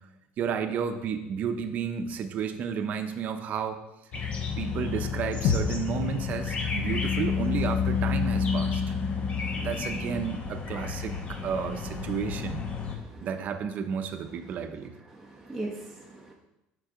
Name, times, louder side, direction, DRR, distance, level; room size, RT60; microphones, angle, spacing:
voice 1, 0.4-3.8 4.6-9.0 9.6-12.6 13.2-15.0, right 7 dB, 45° right, 8 dB, 0.7 m, -32 dB
sound 1, 4.1-13.0, left 6 dB, 35° left, 0.9 m, -30 dB
sound 2, 5.4-9.8, left 6 dB, 75° left, 0.6 m, -34 dB
voice 2, 12.9-13.3 15.1-16.3, right 2 dB, 5° right, -4 dB, 0.8 m, -39 dB
6.3 x 5.4 x 3.7 m, 0.91 s
cardioid pair, 125°, 4 cm